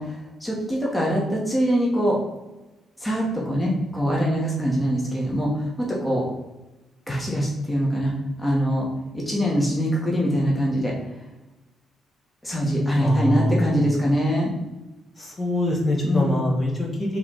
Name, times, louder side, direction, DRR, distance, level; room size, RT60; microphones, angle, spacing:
voice 1, 0.0-2.2 3.0-6.3 7.1-8.1 8.4-8.9 9.1-10.9 12.4-14.5 16.0-16.4, equal, 10° left, -3 dB, 1.2 m, -23 dB
voice 2, 13.0-13.7 15.2-17.2, left 1 dB, 35° left, -2 dB, 1.3 m, -24 dB
4.6 x 3.1 x 3.7 m, 1.1 s
cardioid pair, 90°, 0 cm